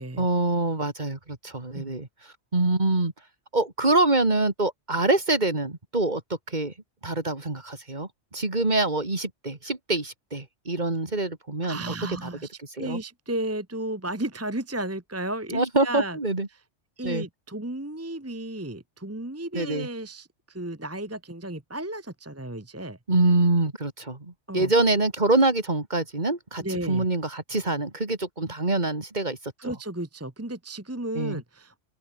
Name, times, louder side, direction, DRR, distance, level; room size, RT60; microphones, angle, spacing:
voice 1, 0.2-2.1 2.5-3.1 3.5-6.2 6.5-6.7 7.0-11.8 12.8-13.0 15.5-16.5 17.0-17.2 19.5-19.9 23.1-29.7 31.2-31.4, right 2 dB, 40° right, 2.8 m, -25 dB
voice 2, 11.6-16.2 16.5-16.6 17.0-23.0 24.5-24.7 26.6-27.1 29.6-31.8, right 1 dB, 15° right, 1.3 m, -34 dB
open air
omnidirectional pair, 1.2 m